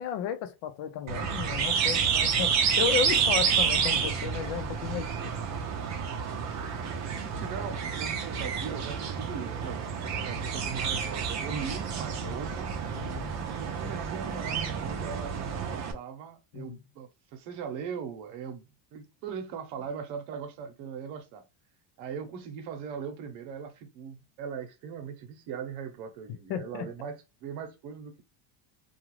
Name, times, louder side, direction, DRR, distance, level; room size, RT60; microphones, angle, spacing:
voice 1, 0.0-5.3 12.2-12.4 12.9-13.4 16.5-16.8 26.5-26.9, left 9 dB, 70° left, 0.7 m, -34 dB
sound 1, 1.1-15.9, right 6 dB, 40° right, 0.5 m, -29 dB
voice 2, 6.8-12.7 13.5-21.4 22.0-28.2, right 7 dB, 85° right, 0.9 m, -40 dB
2.5 x 2.3 x 3.1 m
cardioid pair, 155°, 45 cm